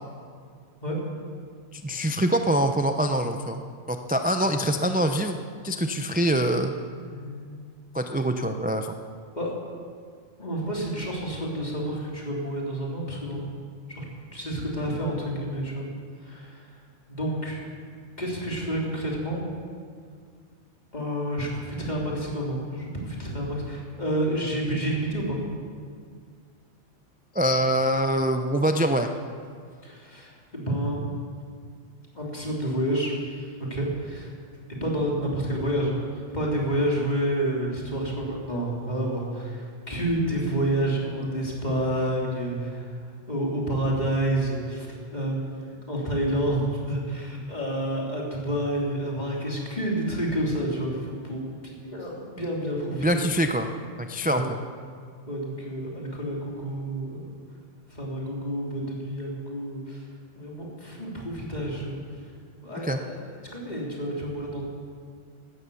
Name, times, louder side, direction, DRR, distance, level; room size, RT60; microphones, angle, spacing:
voice 1, 1.7-3.6 3.9-5.4 5.6-6.7 7.9-9.0 27.3-29.1 52.9-53.7 54.0-54.6 62.8-63.0, right 1 dB, 10° right, 6 dB, 0.4 m, -24 dB
voice 2, 7.0-7.6 9.3-9.5 10.4-13.4 13.9-14.0 14.3-15.9 16.2-16.6 17.1-17.6 18.2-19.4 20.9-25.4 29.8-31.0 32.1-34.3 34.8-43.0 43.3-53.2 54.2-54.5 55.3-57.2 57.9-60.0 60.3-62.0 62.6-64.6, right 1 dB, 35° left, -3 dB, 3.3 m, -29 dB
16.5 x 12.5 x 7.0 m, 2.1 s
omnidirectional pair, 1.3 m